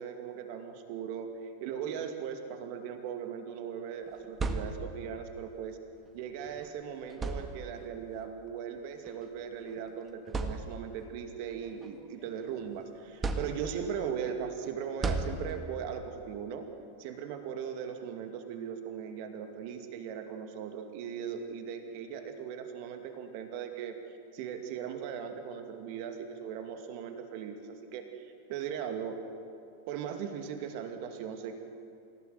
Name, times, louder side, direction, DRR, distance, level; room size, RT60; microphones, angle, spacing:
voice 1, 0.0-5.8 6.1-16.7 17.0-23.9 24.3-29.2 29.9-31.6, right 7 dB, 45° right, 6 dB, 2.4 m, -39 dB
sound 1, 4.1-5.2 6.5-6.6 7.1-8.0 9.1-9.2 9.8-9.9 10.3-11.1 11.6-12.6 13.2-14.0 15.0-15.9, right 3 dB, 20° right, 1.8 m, -35 dB
27.5 x 17.0 x 8.0 m, 2.5 s
figure-of-eight pair, 90°, 0 cm